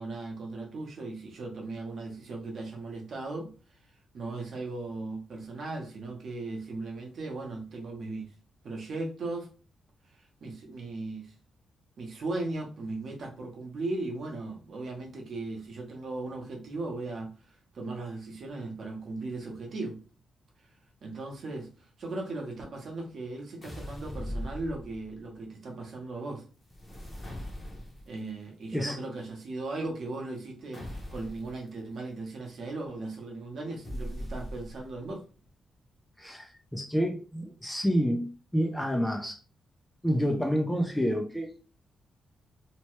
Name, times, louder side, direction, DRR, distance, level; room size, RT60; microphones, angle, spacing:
voice 1, 0.0-3.5 4.1-8.3 8.6-9.5 10.4-11.3 12.0-20.0 21.0-26.4 28.1-35.2, right 2 dB, 50° right, 0.8 m, -37 dB
sound 1, 23.6-25.2 26.6-28.2 30.7-31.6 33.8-35.0, equal, 20° left, 0.8 m, -39 dB
voice 2, 36.2-38.3 38.5-39.4 40.0-41.5, equal, 5° left, 0.4 m, -28 dB
2.9 x 2.2 x 3.0 m
wide cardioid pair, 155°, 0 cm